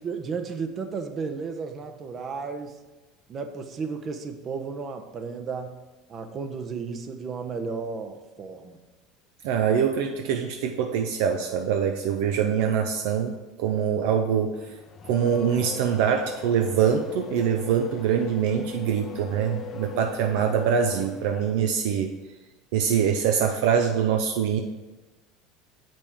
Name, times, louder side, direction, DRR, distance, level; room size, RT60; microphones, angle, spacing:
voice 1, 0.0-2.8 3.3-5.8 6.1-8.8, right 5 dB, 40° right, 7 dB, 0.8 m, -33 dB
voice 2, 9.4-13.3 13.6-14.5 15.0-22.1 22.7-24.6, right 7 dB, 70° right, 4 dB, 0.5 m, -24 dB
Race car auto racing / Accelerating revving vroom, 14.5-21.8, left 6 dB, 40° left, 0.6 m, -40 dB
7.1 x 5.2 x 3.5 m, 1.2 s
hypercardioid pair, 80°, 0 cm